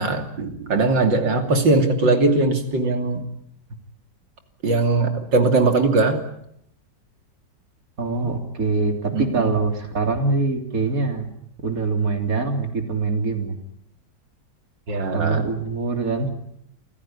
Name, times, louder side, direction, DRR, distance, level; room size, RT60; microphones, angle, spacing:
voice 1, 0.0-3.2 4.6-6.2 8.2-8.3 9.1-9.5 14.9-15.4, right 3 dB, 90° right, 6 dB, 3.5 m, -20 dB
voice 2, 8.0-11.3 11.6-13.6 15.1-16.3, right 4 dB, 50° right, 6 dB, 3.6 m, -24 dB
28.0 x 16.0 x 9.9 m, 0.74 s
omnidirectional pair, 1.9 m